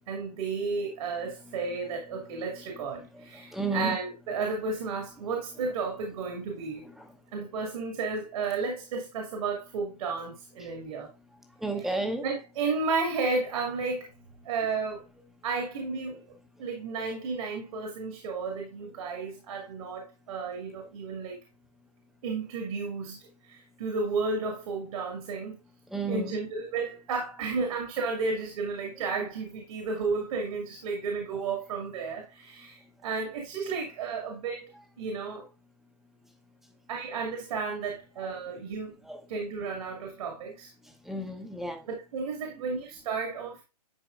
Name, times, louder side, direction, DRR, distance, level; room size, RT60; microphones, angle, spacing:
voice 1, 0.1-6.8 7.3-11.1 12.2-14.1 14.4-15.0 15.4-16.2 16.6-21.4 22.2-25.6 26.1-34.7 35.0-35.4 36.9-38.9 39.3-40.7 41.9-43.6, right 4 dB, 55° right, 2.1 m, -33 dB
voice 2, 1.2-4.0 5.5-5.8 6.8-7.1 11.6-12.3 16.1-16.2 25.9-26.4 28.9-29.1 38.2-38.3 39.0-39.2 41.0-41.8, right 2 dB, ahead, 1.0 m, -35 dB
10.5 x 4.3 x 2.5 m
hypercardioid pair, 145°, 21 cm